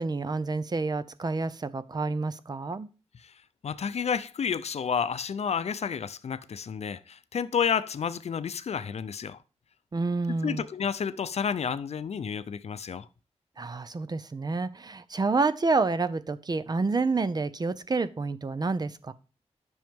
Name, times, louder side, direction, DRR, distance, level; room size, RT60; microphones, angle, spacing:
voice 1, 0.0-2.9 9.9-10.6 13.6-19.1, right 3 dB, 35° right, 0.6 m, -28 dB
voice 2, 3.6-9.4 10.3-13.1, left 7 dB, 70° left, 0.5 m, -30 dB
10.5 x 6.3 x 3.6 m
wide cardioid pair, 140°, 11 cm